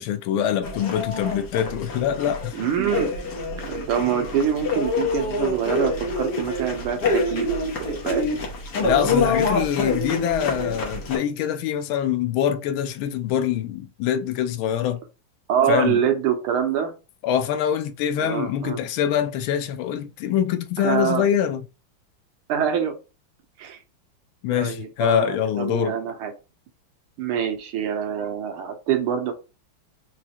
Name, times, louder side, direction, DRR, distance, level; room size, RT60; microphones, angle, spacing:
voice 1, 0.0-2.6 8.8-15.0 15.7-16.0 17.2-21.7 24.4-26.0, left 10 dB, 75° left, 1.3 m, -24 dB
sound 1, 0.6-11.2, left 3 dB, 55° left, 1.5 m, -26 dB
voice 2, 2.5-3.1 3.6-7.5 7.7-8.3 15.5-16.9 18.2-18.8 20.8-21.3 22.5-23.0 23.6-23.8 24.5-26.3 27.2-29.3, right 8 dB, 80° right, 1.7 m, -25 dB
4.8 x 3.1 x 2.8 m
omnidirectional pair, 2.4 m